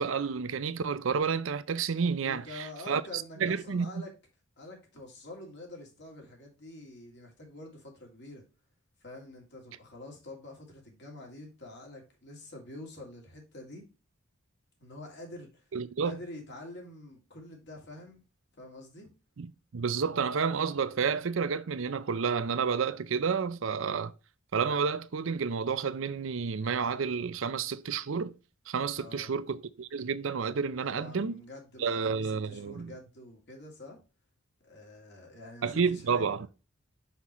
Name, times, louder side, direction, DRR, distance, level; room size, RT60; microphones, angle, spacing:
voice 1, 0.0-3.9 15.7-16.2 19.4-24.1 24.5-28.3 28.7-31.3 31.8-32.9 35.6-36.5, right 5 dB, 65° right, 0.5 m, -30 dB
voice 2, 2.1-4.1 4.6-8.4 9.0-13.9 14.8-15.6 16.0-18.2 18.5-19.1 28.9-29.3 30.8-34.0 34.6-36.5, left 2 dB, 55° left, 2.5 m, -46 dB
6.0 x 5.7 x 3.0 m
head